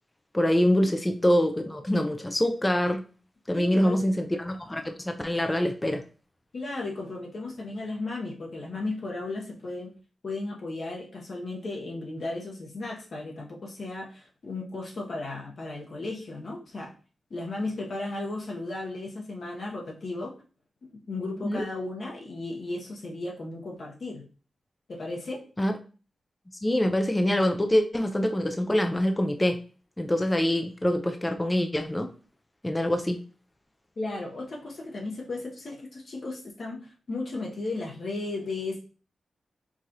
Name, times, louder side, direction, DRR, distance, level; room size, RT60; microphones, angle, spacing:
voice 1, 0.3-3.0 3.5-6.0 21.4-21.6 25.6-25.7 26.6-29.6 30.0-32.1 32.6-33.2, left 1 dB, 15° left, 6 dB, 0.4 m, -25 dB
voice 2, 3.5-4.0 6.5-9.9 10.2-16.9 17.3-20.3 20.9-24.2 24.9-25.4 34.0-38.8, left 2 dB, 60° left, -2 dB, 0.9 m, -35 dB
4.7 x 2.4 x 2.8 m, 0.37 s
wide cardioid pair, 105°, 0 cm